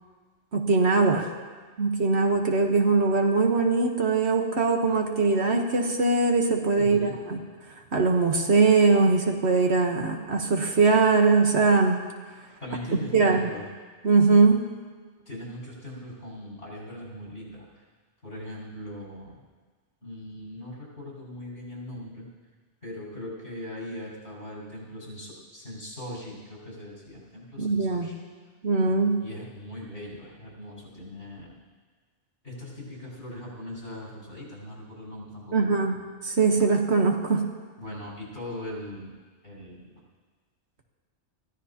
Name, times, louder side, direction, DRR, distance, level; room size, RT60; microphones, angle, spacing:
voice 1, 0.5-1.3 1.8-7.4 7.9-12.0 13.1-13.5 14.0-14.6 27.6-28.1 28.6-29.2 35.5-37.5, right 4 dB, 70° right, 3 dB, 1.6 m, -21 dB
voice 2, 6.8-7.2 12.6-13.6 15.3-17.7 18.2-19.4 20.0-22.3 22.8-28.1 29.2-31.5 32.4-35.6 37.8-39.1 39.4-39.9, left 1 dB, 70° left, -4 dB, 6.3 m, -40 dB
23.5 x 15.5 x 2.9 m, 1.5 s
omnidirectional pair, 1.2 m